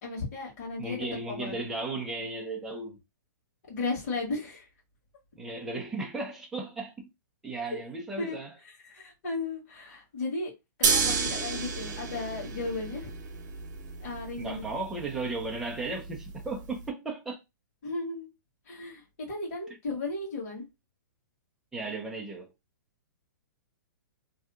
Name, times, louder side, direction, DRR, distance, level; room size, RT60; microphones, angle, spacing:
voice 1, 0.0-1.7 3.7-4.7 7.7-7.8 8.2-8.3 8.8-10.5 10.8-13.1 14.0-14.6 17.8-18.3 18.7-19.0 19.3-20.7, left 3 dB, 40° left, 1.5 m, -35 dB
voice 2, 0.8-3.0 5.4-7.1 7.4-8.5 14.4-17.4 21.7-22.5, right 3 dB, 5° right, 0.5 m, -35 dB
sound 1, 10.8-16.9, right 5 dB, 60° right, 0.8 m, -32 dB
2.8 x 2.2 x 3.5 m
hypercardioid pair, 170°, 11 cm